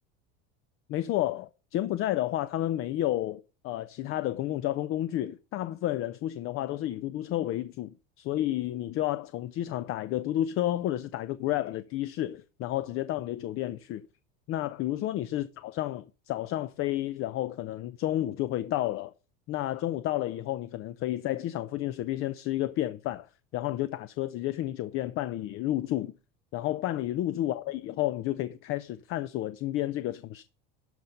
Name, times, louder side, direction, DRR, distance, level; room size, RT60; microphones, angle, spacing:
voice 1, 0.9-14.0 14.5-19.1 19.5-23.3 23.5-26.1 26.5-30.4, left 14 dB, 45° left, 0.6 m, -31 dB
12.0 x 4.3 x 5.3 m
supercardioid pair, 105°, 29 cm